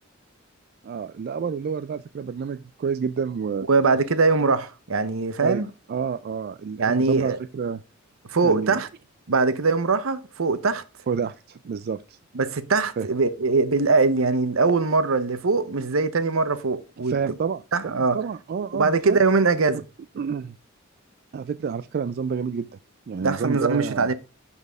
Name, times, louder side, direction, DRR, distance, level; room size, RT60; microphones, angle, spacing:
voice 1, 0.8-3.7 5.4-7.8 8.4-8.8 11.1-12.2 13.0-13.1 17.0-19.2 20.2-20.6 21.3-22.7 23.1-24.1, right 6 dB, 50° right, 0.3 m, -29 dB
voice 2, 3.7-5.7 6.8-7.4 8.3-8.9 9.3-10.8 12.3-17.2 17.7-18.2 18.7-19.8 23.2-24.1, right 4 dB, 75° right, 0.8 m, -22 dB
10.5 x 4.1 x 3.5 m
head